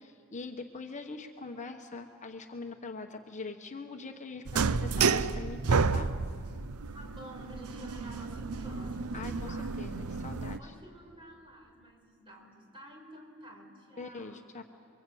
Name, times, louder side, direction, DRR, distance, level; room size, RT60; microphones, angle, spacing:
voice 1, 0.0-6.1 9.1-10.8 14.0-14.6, left 3 dB, 35° left, 4 dB, 1.1 m, -43 dB
sound 1, 4.5-10.6, right 4 dB, 85° right, 0.7 m, -31 dB
voice 2, 6.9-9.7 10.6-14.4, right 1 dB, 25° right, 1 dB, 5.0 m, -49 dB
29.0 x 23.0 x 8.5 m, 2.3 s
head